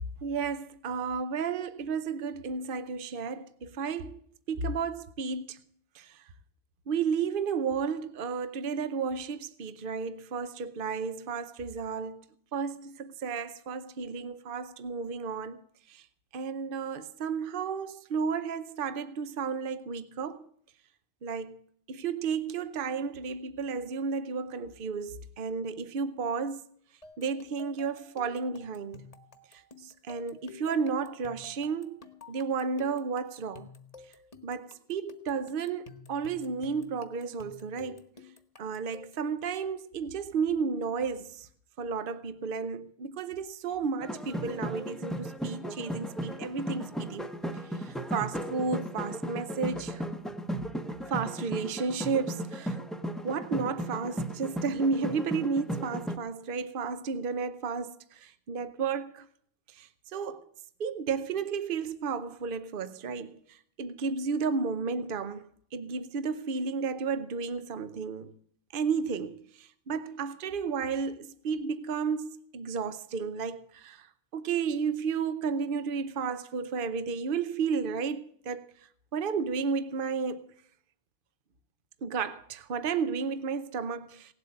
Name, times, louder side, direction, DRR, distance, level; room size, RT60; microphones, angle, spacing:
voice 1, 0.2-4.2 4.5-5.6 5.9-6.2 6.9-12.2 12.5-15.6 15.9-16.0 16.3-20.5 21.2-21.6 21.9-26.6 27.2-29.1 29.5-32.0 32.3-33.7 34.4-38.0 38.6-41.5 41.8-47.3 47.7-50.0 51.1-52.8 53.2-59.3 59.7-60.4 60.8-68.3 68.7-74.1 74.3-78.6 79.1-80.4 82.0-84.3, right 5 dB, 60° right, 0.9 m, -33 dB
sound 1, 27.0-39.3, left 4 dB, 40° left, 1.2 m, -52 dB
sound 2, 44.0-56.2, right 1 dB, ahead, 0.7 m, -36 dB
17.5 x 7.9 x 8.6 m
omnidirectional pair, 1.0 m